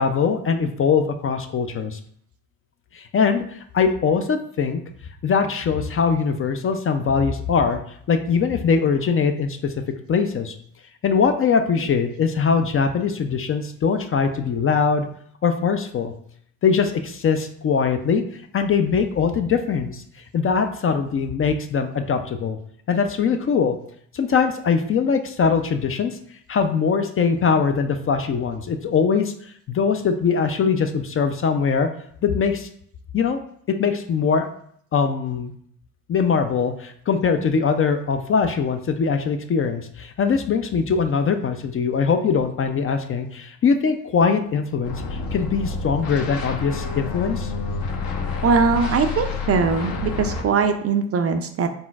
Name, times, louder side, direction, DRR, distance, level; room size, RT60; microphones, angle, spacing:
voice 1, 0.0-2.0 2.9-4.8 5.2-7.8 8.1-9.7 10.1-10.6 11.0-15.1 15.4-16.1 16.6-20.0 20.3-22.6 22.9-23.8 24.1-26.2 26.5-29.3 29.7-31.9 32.2-32.7 33.1-33.4 33.8-34.5 34.9-35.5 36.1-47.5, left 5 dB, 30° left, 7 dB, 0.4 m, -21 dB
sound 1, 44.8-50.4, left 4 dB, 55° left, 0.9 m, -28 dB
voice 2, 48.4-51.7, right 5 dB, 35° right, 7 dB, 0.4 m, -21 dB
4.0 x 3.8 x 2.3 m, 0.64 s
hypercardioid pair, 45°, 43 cm